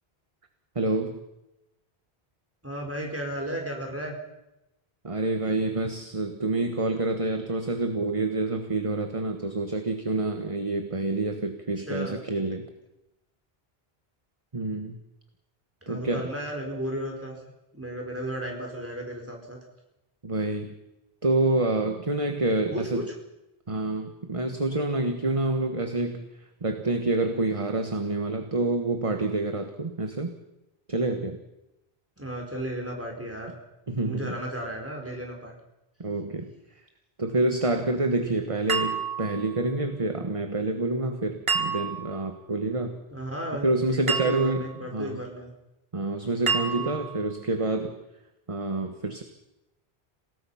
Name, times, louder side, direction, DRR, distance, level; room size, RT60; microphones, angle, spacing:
voice 1, 0.7-1.2 5.0-12.7 14.5-15.0 15.9-16.3 20.2-20.8 21.2-23.0 23.7-26.2 26.6-30.3 30.9-31.4 33.9-34.4 36.0-36.5 37.2-43.0 43.6-44.7 44.9-45.2 45.9-48.0 48.5-49.2, right 2 dB, 30° right, 6 dB, 1.4 m, -27 dB
voice 2, 2.6-4.1 11.8-12.2 15.9-17.3 17.7-19.6 22.7-23.0 32.2-33.6 34.0-35.5 38.1-38.3 43.1-45.5 46.8-46.9, right 1 dB, 15° right, 0 dB, 4.8 m, -34 dB
sound 1, 38.7-39.6 41.5-42.2 44.1-44.8 46.5-47.2, right 6 dB, 70° right, 2.1 m, -29 dB
28.0 x 18.0 x 5.7 m, 0.92 s
omnidirectional pair, 1.1 m